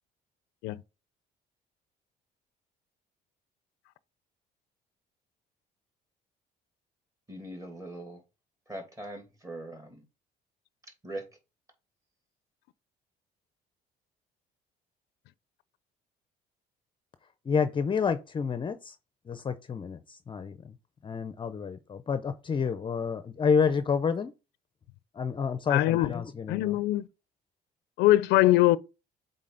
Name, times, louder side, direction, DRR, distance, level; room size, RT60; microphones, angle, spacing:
voice 1, 7.3-8.2 8.7-10.0 11.0-11.2, right 1 dB, 20° right, 2.4 m, -41 dB
voice 2, 17.5-19.0 19.3-20.7 21.0-24.3 25.1-26.8, left 6 dB, 30° left, 0.6 m, -29 dB
voice 3, 25.7-26.1 26.5-27.0 28.0-28.8, left 16 dB, 90° left, 0.5 m, -22 dB
7.6 x 4.0 x 3.9 m
cardioid pair, 110°, 17 cm